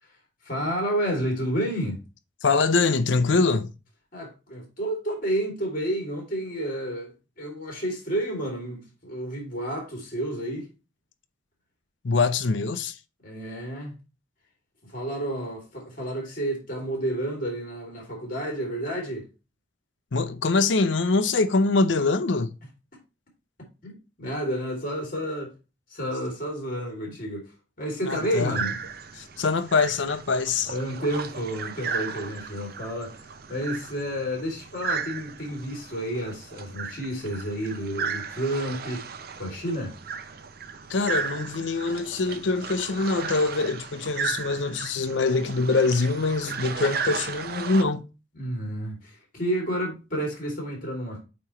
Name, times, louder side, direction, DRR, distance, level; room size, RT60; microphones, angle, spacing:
voice 1, 0.4-2.0 4.1-10.7 13.2-14.0 14.8-19.3 23.8-25.5 25.9-27.5 27.8-28.8 30.7-33.1 33.5-39.0 39.4-39.9 48.3-51.2, right 1 dB, 50° left, 2.9 m, -30 dB
voice 2, 2.4-3.7 12.0-13.0 20.1-22.5 28.1-28.6 29.2-30.7 40.9-48.0, left 3 dB, 80° left, 0.6 m, -24 dB
sound 1, 28.1-47.8, right 6 dB, 55° right, 0.6 m, -35 dB
8.5 x 3.1 x 4.2 m
head